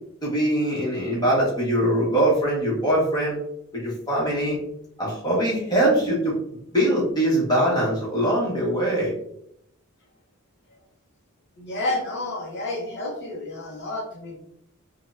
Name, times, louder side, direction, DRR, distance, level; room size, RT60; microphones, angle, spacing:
voice 1, 0.2-3.4 3.7-4.6 5.0-6.3 6.7-9.1, right 1 dB, 20° left, -5 dB, 1.2 m, -22 dB
voice 2, 11.6-14.4, left 2 dB, 50° left, -2 dB, 0.7 m, -30 dB
4.3 x 2.3 x 2.5 m, 0.72 s
head